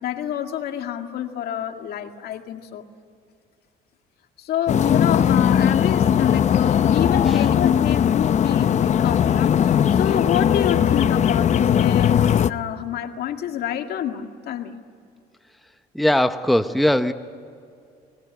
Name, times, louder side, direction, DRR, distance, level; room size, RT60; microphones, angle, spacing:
voice 1, 0.0-2.9 4.4-14.8, left 10 dB, 70° left, 5 dB, 2.0 m, -28 dB
sound 1, 4.7-12.5, left 9 dB, 45° left, 0.7 m, -19 dB
voice 2, 15.9-17.1, left 1 dB, ahead, 8 dB, 0.9 m, -20 dB
30.0 x 20.5 x 9.7 m, 2.4 s
cardioid pair, 110°, 17 cm